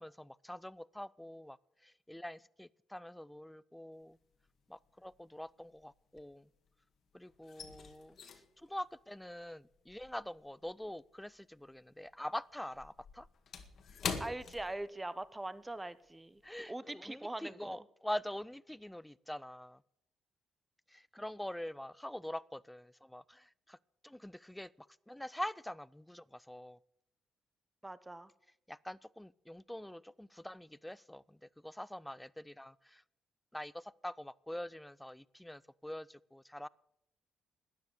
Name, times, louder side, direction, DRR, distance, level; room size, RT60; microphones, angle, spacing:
voice 1, 0.0-1.6 1.8-4.2 4.7-6.5 7.1-8.2 8.6-13.3 16.4-19.8 20.9-23.8 24.0-26.8 28.7-33.0 33.5-36.7, left 1 dB, 5° left, 21 dB, 0.4 m, -44 dB
sound 1, 4.0-4.6 4.8-6.8 7.1-11.8 12.1-15.4 15.7-15.9 16.4-16.6, left 6 dB, 55° left, 1.9 m, -45 dB
voice 2, 14.2-16.4 16.7-17.8 27.8-28.3, right 2 dB, 15° right, 16 dB, 0.9 m, -42 dB
12.5 x 9.8 x 8.3 m, 0.79 s
cardioid pair, 90°, 0 cm